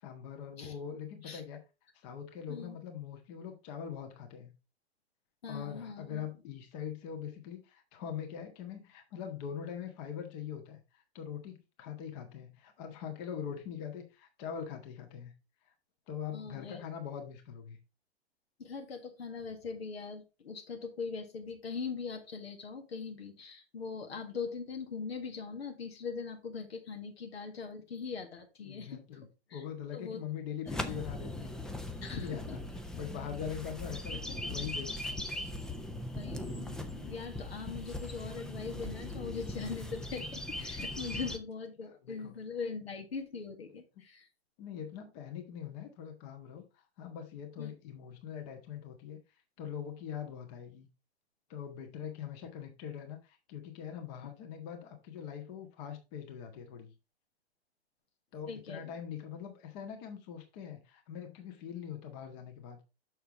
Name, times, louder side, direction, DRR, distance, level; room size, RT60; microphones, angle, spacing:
voice 1, 0.0-1.6 1.9-4.5 5.5-15.3 16.1-17.8 28.6-29.3 29.5-31.5 32.2-32.6 32.9-35.2 41.8-42.4 44.6-49.2 49.6-50.9 51.5-56.9 58.3-62.8, left 8 dB, 40° left, 1.7 m, -42 dB
voice 2, 5.4-6.3 16.3-16.8 18.6-29.0 29.5-29.6 29.9-30.2 32.0-32.6 36.1-44.3 47.6-47.7 58.5-58.9, left 5 dB, 70° left, 1.8 m, -41 dB
sound 1, 30.7-41.4, left 1 dB, ahead, 0.4 m, -39 dB
6.6 x 6.5 x 3.7 m
figure-of-eight pair, 110°, 32 cm